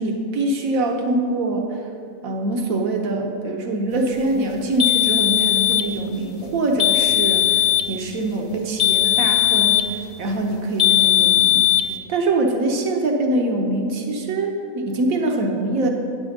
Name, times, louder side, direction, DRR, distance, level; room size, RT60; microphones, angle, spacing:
voice 1, 0.0-1.8 2.2-11.7 12.1-15.9, right 2 dB, 85° right, 2 dB, 1.3 m, -24 dB
sound 1, 4.8-5.9 6.8-7.9 8.8-9.9 10.8-11.9, left 15 dB, 60° left, 0.3 m, -18 dB
9.6 x 6.1 x 6.5 m, 2.5 s
omnidirectional pair, 1.4 m